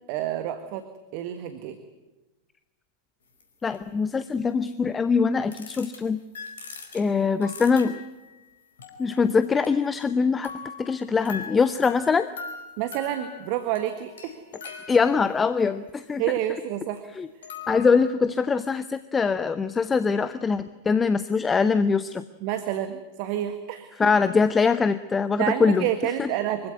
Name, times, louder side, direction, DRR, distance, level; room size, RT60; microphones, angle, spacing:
voice 1, 0.1-0.8 1.1-1.8 12.8-14.4 16.2-17.0 22.4-24.1 25.4-26.7, right 12 dB, 45° right, 9 dB, 1.6 m, -29 dB
sound 1, 3.4-3.5 3.7-3.8 5.5-6.0 6.3-8.3 8.8-10.2 10.4-15.6 17.0-17.1 17.4-18.1, left 5 dB, 65° left, 4.5 m, -41 dB
voice 2, 3.6-6.2 6.9-8.0 9.0-10.5 10.8-12.3 14.9-16.2 17.2-17.3 17.7-22.2 24.0-25.9 26.2-26.3, left 5 dB, 15° left, 13 dB, 0.8 m, -23 dB
25.0 x 16.0 x 9.6 m, 1.1 s
figure-of-eight pair, 90°, 0 cm